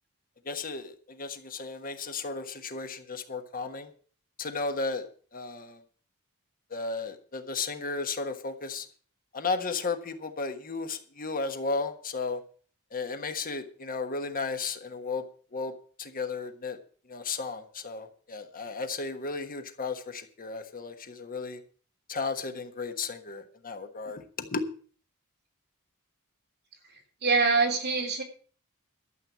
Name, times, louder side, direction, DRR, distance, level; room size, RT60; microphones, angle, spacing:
voice 1, 0.5-3.9 4.4-5.0 5.3-5.8 6.7-8.9 9.3-12.4 12.9-15.2 15.5-15.7 16.0-16.8 17.1-21.6 22.1-24.6, left 4 dB, 40° left, 7 dB, 1.3 m, -34 dB
voice 2, 27.2-28.2, right 4 dB, 50° right, 2 dB, 3.3 m, -24 dB
12.5 x 7.9 x 7.2 m, 0.43 s
head